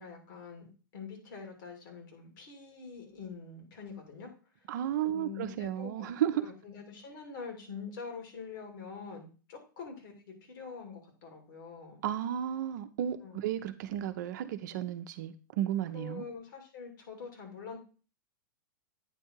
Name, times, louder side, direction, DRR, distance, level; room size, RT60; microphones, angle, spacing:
voice 1, 0.0-4.3 4.6-4.7 5.0-6.1 6.4-12.0 13.2-13.4 15.9-17.8, left 5 dB, 65° left, 2.6 m, -45 dB
voice 2, 4.7-6.5 12.0-16.3, right 11 dB, 60° right, 0.7 m, -33 dB
9.0 x 3.6 x 4.5 m
hypercardioid pair, 110°, 11 cm